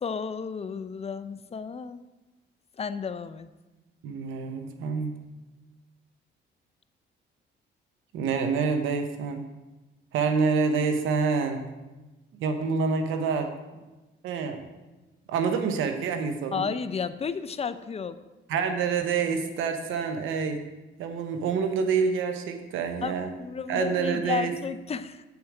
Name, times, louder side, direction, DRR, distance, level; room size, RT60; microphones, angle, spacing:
voice 1, 0.0-2.0 2.8-3.5 16.5-18.2 23.0-25.2, left 6 dB, 30° left, 13 dB, 0.5 m, -32 dB
voice 2, 4.0-5.1 8.1-9.4 10.1-11.6 12.4-13.5 14.2-14.6 15.3-16.7 18.5-20.6 21.0-23.3 23.7-24.6, right 5 dB, 90° right, 7 dB, 0.9 m, -27 dB
7.7 x 7.1 x 4.9 m, 1.1 s
cardioid pair, 90°, 20 cm